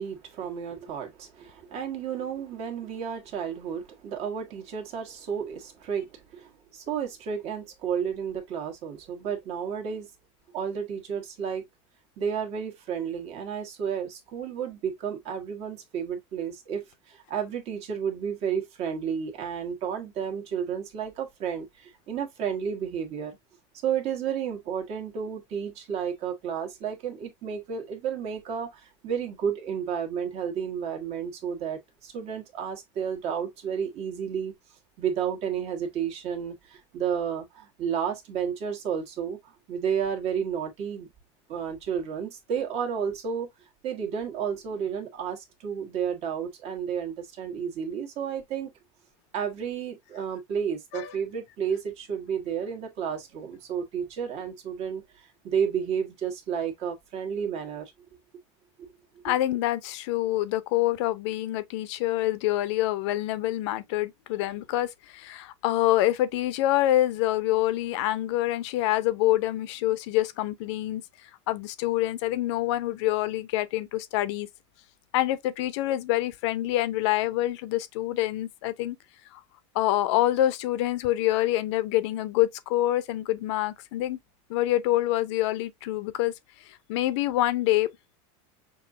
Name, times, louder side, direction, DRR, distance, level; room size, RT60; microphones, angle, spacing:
voice 1, 0.0-10.1 10.5-11.6 12.2-23.4 23.8-34.5 35.0-41.1 41.5-43.5 43.8-48.7 49.3-57.9 58.8-58.9, right 7 dB, 45° right, 1.4 m, -32 dB
voice 2, 59.2-71.0 71.5-74.5 75.1-79.0 79.3-79.4 79.7-84.2 84.5-86.3 86.9-87.9, left 15 dB, 70° left, 0.8 m, -26 dB
6.3 x 2.7 x 2.6 m
supercardioid pair, 145°, 15 cm